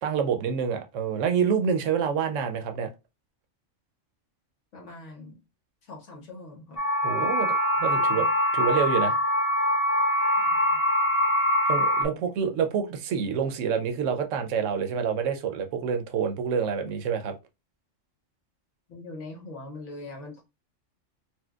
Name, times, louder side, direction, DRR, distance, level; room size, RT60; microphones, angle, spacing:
voice 1, 0.0-2.9 7.0-7.5 7.8-8.3 8.5-9.1 11.7-17.3, right 7 dB, 75° right, 0.9 m, -27 dB
voice 2, 4.7-5.4 5.9-6.8 7.9-8.3 8.6-8.7 9.1-9.2 10.5-10.8 12.0-12.3 18.9-20.4, left 2 dB, 70° left, 1.3 m, -42 dB
sound 1, 6.8-12.0, left 1 dB, 45° left, 0.5 m, -23 dB
4.3 x 2.2 x 2.3 m
omnidirectional pair, 1.3 m